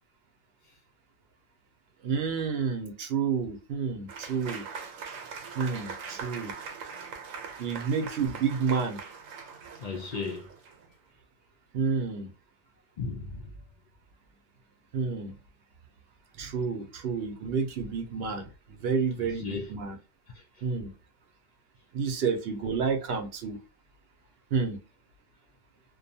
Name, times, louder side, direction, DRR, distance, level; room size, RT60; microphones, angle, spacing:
voice 1, 2.0-4.7 5.6-6.5 7.6-9.0 11.7-12.3 14.9-15.3 16.4-20.0 20.6-20.9 21.9-23.6 24.5-24.8, right 5 dB, 60° right, 0.8 m, -30 dB
Applause / Crowd, 4.1-10.9, right 5 dB, 80° right, 1.0 m, -41 dB
voice 2, 9.8-10.5 13.0-13.6 19.2-19.7 20.3-20.6, left 4 dB, 80° left, 0.4 m, -36 dB
2.6 x 2.2 x 2.6 m
omnidirectional pair, 1.3 m